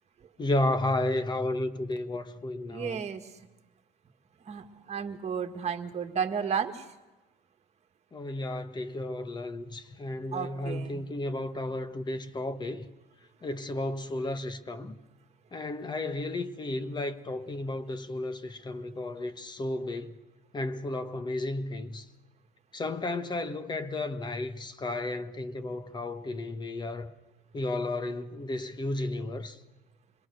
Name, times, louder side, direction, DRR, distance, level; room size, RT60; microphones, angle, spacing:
voice 1, 0.4-3.0 8.1-12.8 13.4-15.0 15.5-20.2 20.5-22.1 22.7-27.1 27.5-29.6, left 2 dB, 25° left, 1.4 m, -33 dB
voice 2, 2.7-3.2 4.5-6.8 10.3-11.0, right 7 dB, 40° right, 1.9 m, -33 dB
26.5 x 21.5 x 6.5 m
cardioid pair, 110°, 17 cm